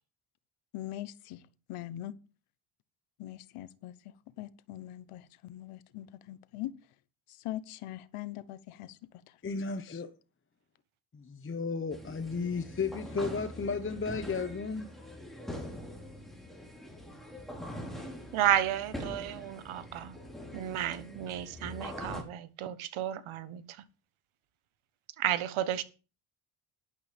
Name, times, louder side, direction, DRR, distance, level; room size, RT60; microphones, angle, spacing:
voice 1, 0.7-1.4 1.7-2.1 3.2-3.9 4.4-6.7 7.3-9.2 9.9-10.0, left 14 dB, 85° left, 1.0 m, -42 dB
voice 2, 9.4-10.1 11.1-14.9, left 4 dB, 25° left, 1.1 m, -34 dB
sound 1, 11.9-22.2, equal, ahead, 4.6 m, -43 dB
voice 3, 18.3-20.2 20.5-23.8 25.2-25.8, right 11 dB, 75° right, 1.3 m, -32 dB
12.5 x 11.5 x 3.5 m
cardioid pair, 95°, 50 cm